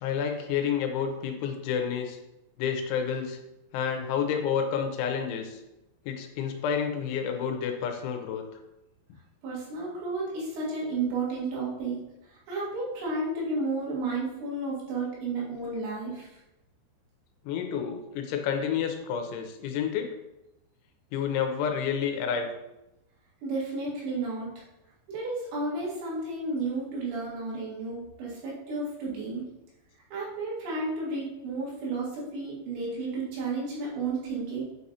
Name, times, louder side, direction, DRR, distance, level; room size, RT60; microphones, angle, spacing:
voice 1, 0.0-2.2 2.6-3.4 3.7-5.6 6.1-8.4 17.5-20.1 21.1-22.5, left 7 dB, 85° left, 4 dB, 3.2 m, -29 dB
voice 2, 9.4-12.0 12.2-16.3 23.4-24.6 25.1-29.4 30.1-34.6, right 3 dB, 75° right, -6 dB, 4.1 m, -32 dB
8.5 x 4.9 x 2.8 m, 0.93 s
omnidirectional pair, 5.3 m